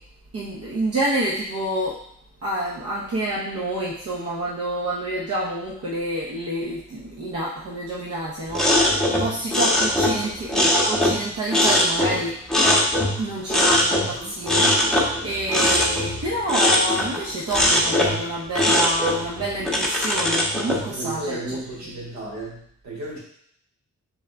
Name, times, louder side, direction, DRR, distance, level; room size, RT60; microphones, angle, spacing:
voice 1, 0.3-2.0 2.4-12.4 13.2-21.4, right 1 dB, 55° right, -5 dB, 0.8 m, -28 dB
sound 1, 8.5-11.2 11.5-13.2 13.5-14.1 14.4-17.2 17.5-18.2 18.5-20.8, left 1 dB, ahead, 0.9 m, -20 dB
voice 2, 13.9-14.3 15.3-15.7 19.6-19.7 20.6-23.2, right 2 dB, 70° right, -4 dB, 1.8 m, -35 dB
3.8 x 3.5 x 3.4 m, 0.68 s
cardioid pair, 95°, 29 cm